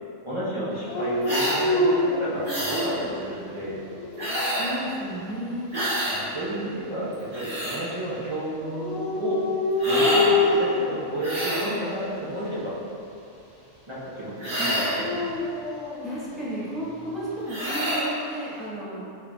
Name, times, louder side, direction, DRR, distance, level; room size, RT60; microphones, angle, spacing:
voice 1, 0.2-3.8 5.9-9.4 9.8-12.8 13.9-15.2, right 1 dB, 50° right, -10 dB, 0.3 m, -31 dB
Dog, 0.9-3.1 3.7-4.5 8.6-10.9 11.7-12.1 14.7-16.0, left 2 dB, 60° left, 0.7 m, -26 dB
sound 1, 1.2-1.6 2.4-2.9 4.2-4.8 5.7-6.2 7.1-7.8 9.8-10.3 11.2-11.7 14.4-15.0 17.5-18.1, equal, 35° right, 1.5 m, -27 dB
voice 2, 4.5-5.7 14.6-14.7 16.0-19.2, equal, ahead, -12 dB, 0.9 m, -33 dB
4.3 x 3.5 x 2.2 m, 2.6 s
omnidirectional pair, 1.5 m